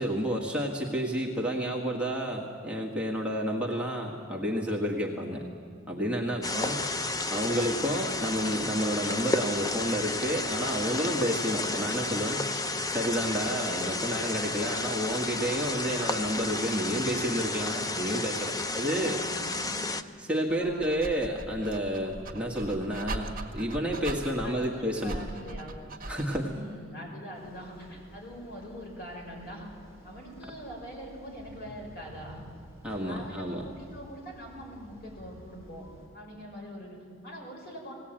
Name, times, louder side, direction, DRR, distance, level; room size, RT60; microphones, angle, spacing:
voice 1, 0.0-5.4 5.9-6.7 7.3-12.5 12.9-19.2 20.2-25.2 26.1-26.5 32.8-33.6, equal, 5° right, -2 dB, 1.6 m, -30 dB
voice 2, 6.3-6.8 13.5-13.9 18.6-19.8 20.5-21.0 24.3-25.7 26.4-29.7 30.0-32.4 33.0-37.9, equal, 50° left, -1 dB, 5.7 m, -44 dB
sound 1, 6.4-20.0, left 2 dB, 20° left, 0.6 m, -32 dB
Dog, 20.5-26.6, right 2 dB, 45° right, 1.7 m, -40 dB
sound 2, 27.3-36.1, equal, 75° left, 6.7 m, -52 dB
19.5 x 17.0 x 8.9 m, 2.2 s
head